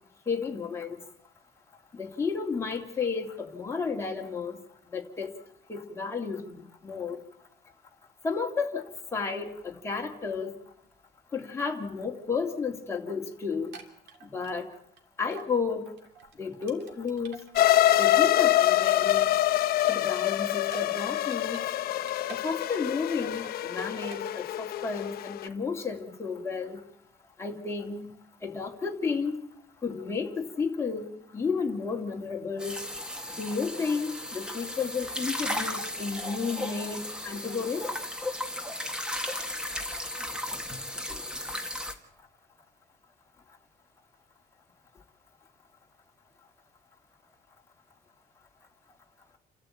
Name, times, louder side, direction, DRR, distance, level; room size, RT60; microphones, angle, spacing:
voice 1, 0.3-1.1 1.9-5.3 5.7-7.2 8.2-10.6 11.3-13.8 14.2-14.7 15.2-15.9 16.3-17.4 18.0-19.4 19.8-21.7 22.3-26.8 27.4-28.1 28.4-29.4 29.8-32.8 33.4-37.9 41.1-41.3, left 5 dB, 15° left, 0 dB, 2.4 m, -32 dB
sound 1, 13.5-15.0 15.3-15.5 15.9-18.3 18.6-21.7 22.0-23.0 23.2-23.6 24.0-24.2, right 6 dB, 75° right, 3.0 m, -49 dB
sound 2, 17.6-25.5, left 13 dB, 55° left, 0.8 m, -25 dB
sound 3, 32.6-41.9, left 1 dB, 5° right, 1.6 m, -35 dB
29.0 x 13.0 x 8.6 m, 0.73 s
cardioid pair, 165°, 18 cm